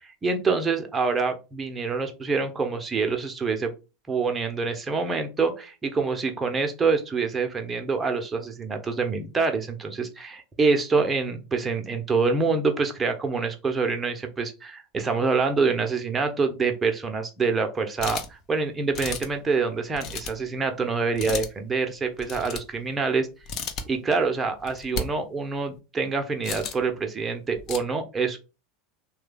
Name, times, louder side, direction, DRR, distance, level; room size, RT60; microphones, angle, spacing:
voice 1, 0.2-3.7 4.1-23.3 23.9-28.4, right 4 dB, 20° right, 5 dB, 0.7 m, -26 dB
sound 1, 18.0-18.4 18.9-19.4 19.9-20.4 21.1-21.5 22.2-22.8 23.4-23.8 24.6-25.0 26.4-26.9 27.6-27.8, left 5 dB, 45° left, 0.6 m, -33 dB
3.2 x 2.3 x 3.4 m, 0.30 s
figure-of-eight pair, 80°, 0 cm